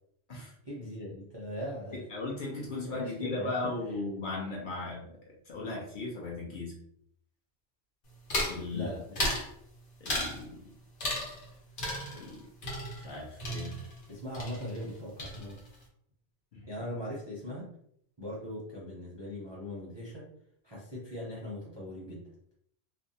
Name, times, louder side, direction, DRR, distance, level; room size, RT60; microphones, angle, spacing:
voice 1, 0.6-2.0 2.9-3.5 8.7-9.2 14.1-15.6 16.7-17.7 18.2-20.3 20.6-22.2, left 1 dB, 35° right, -6 dB, 0.5 m, -40 dB
voice 2, 1.9-5.1 5.5-6.8 8.4-8.9 10.0-10.6 12.1-12.4 13.0-13.7 16.5-16.7, left 3 dB, 55° left, -3 dB, 0.7 m, -37 dB
sound 1, 8.3-8.6 9.2-9.5 10.1-10.4 11.0-11.5 11.8-14.1 14.3-14.9 15.2-15.7, left 1 dB, 80° left, 1.1 m, -34 dB
2.6 x 2.0 x 2.7 m, 0.69 s
omnidirectional pair, 1.2 m